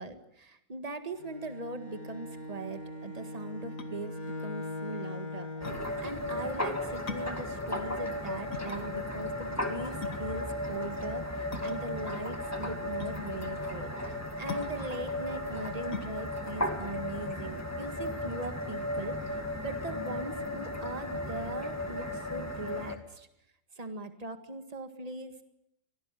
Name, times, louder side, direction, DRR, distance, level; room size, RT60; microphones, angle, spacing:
voice 1, 0.0-5.8 6.0-23.3 23.8-25.4, right 2 dB, 25° right, 8 dB, 1.8 m, -40 dB
Bowed string instrument, 1.2-5.9, left 1 dB, 25° left, 2.3 m, -40 dB
sound 1, 3.8-18.0, left 4 dB, 50° left, 2.0 m, -44 dB
sound 2, 5.6-23.0, left 1 dB, 10° left, 2.2 m, -35 dB
25.0 x 18.0 x 9.2 m, 0.80 s
omnidirectional pair, 1.8 m